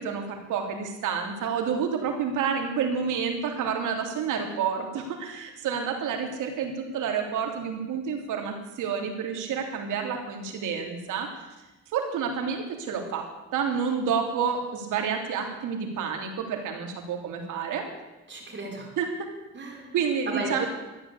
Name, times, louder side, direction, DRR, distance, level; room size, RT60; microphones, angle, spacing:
voice 1, 0.0-11.3 11.9-13.3 13.5-17.8 19.0-19.1 19.9-20.6, right 6 dB, 85° right, 3 dB, 3.2 m, -29 dB
voice 2, 18.3-18.9 19.5-20.0 20.3-20.7, right 2 dB, 40° right, 0 dB, 5.2 m, -34 dB
13.5 x 11.0 x 8.5 m, 1.1 s
cardioid pair, 90°, 30 cm